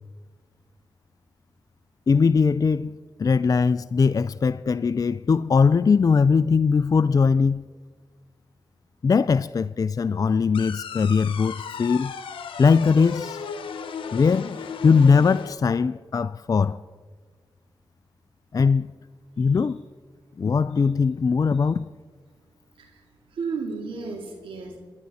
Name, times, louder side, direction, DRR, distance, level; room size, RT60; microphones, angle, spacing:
voice 1, 2.1-7.7 9.0-12.1 12.6-13.4 14.1-14.5 14.8-16.8 18.5-18.9 19.4-19.8 20.4-21.9, left 5 dB, 45° left, 0.4 m, -20 dB
sound 1, 10.5-15.5, left 6 dB, 80° left, 1.0 m, -35 dB
voice 2, 23.3-24.8, right 4 dB, 85° right, 2.3 m, -33 dB
26.5 x 10.5 x 4.2 m
cardioid pair, 45°, 9 cm